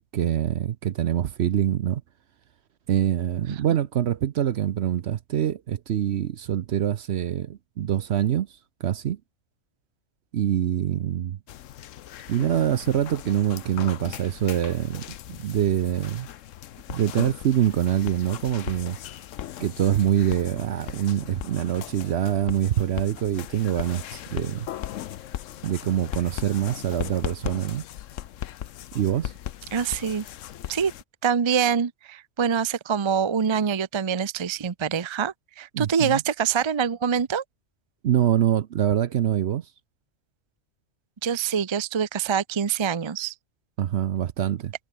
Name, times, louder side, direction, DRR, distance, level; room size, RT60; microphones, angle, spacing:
voice 1, 0.0-2.0 2.9-8.5 8.8-9.2 10.3-11.4 12.3-16.3 16.9-19.0 19.6-24.7 25.6-27.8 28.9-29.3 35.7-36.2 38.0-39.6 43.8-44.7, right 10 dB, 60° right, 0.8 m, -25 dB
sound 1, 11.5-31.0, left 12 dB, 70° left, 1.0 m, -38 dB
voice 2, 29.7-30.3 30.7-30.9 31.2-37.4 41.2-43.3, right 7 dB, 35° right, 0.5 m, -25 dB
omnidirectional pair, 1.4 m